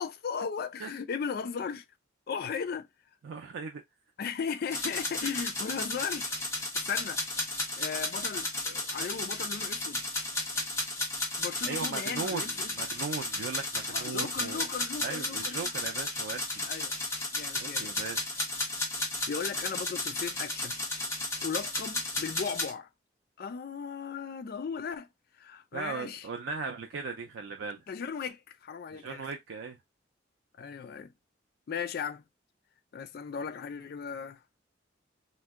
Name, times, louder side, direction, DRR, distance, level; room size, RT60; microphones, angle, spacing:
voice 1, 0.0-1.8 2.3-2.9 4.2-7.2 7.8-10.0 11.4-12.7 13.9-15.7 16.6-17.0 17.3-17.9 19.3-20.8 21.4-22.9 23.4-25.1 25.4-26.3 27.9-29.3 30.6-31.1 31.7-32.2 32.9-34.4, left 6 dB, 50° left, 0.3 m, -37 dB
voice 2, 3.2-3.8 11.6-14.6 15.0-16.7 17.6-18.4 25.7-27.8 28.9-29.8, right 4 dB, 90° right, 0.4 m, -38 dB
sound 1, 4.7-22.7, left 2 dB, 15° left, 0.9 m, -34 dB
2.6 x 2.1 x 3.5 m
head